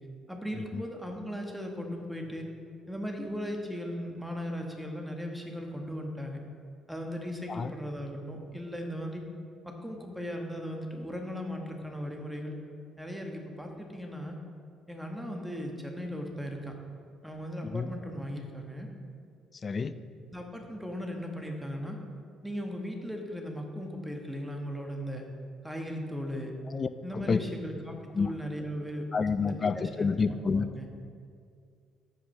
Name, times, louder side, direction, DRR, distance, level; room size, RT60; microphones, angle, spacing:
voice 1, 0.3-2.5 2.9-6.4 6.9-9.2 9.6-12.6 13.0-14.4 14.9-16.7 17.2-18.9 20.3-22.0 22.4-25.3 25.6-26.5 27.0-29.1 29.4-30.9, equal, 5° right, 2 dB, 1.4 m, -37 dB
voice 2, 19.6-20.0 26.7-27.4 28.1-28.3 29.1-30.7, left 5 dB, 40° left, 13 dB, 0.4 m, -29 dB
14.0 x 5.0 x 3.3 m, 2.3 s
supercardioid pair, 65°, 0 cm